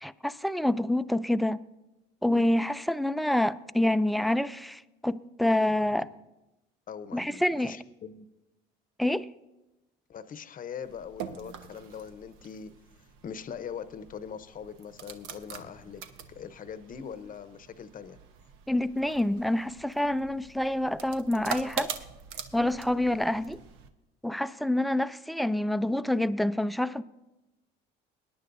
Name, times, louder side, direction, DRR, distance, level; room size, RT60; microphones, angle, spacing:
voice 1, 0.0-1.6 2.2-6.1 7.1-7.7 9.0-9.3 18.7-21.9 22.5-23.6 24.2-27.0, left 1 dB, ahead, 0.4 m, -27 dB
voice 2, 6.9-8.3 10.1-12.7 13.2-18.2 23.4-23.5, left 7 dB, 40° left, 0.8 m, -42 dB
sound 1, 10.8-23.9, right 8 dB, 75° right, 0.9 m, -43 dB
21.5 x 10.0 x 2.6 m
supercardioid pair, 85°, 21 cm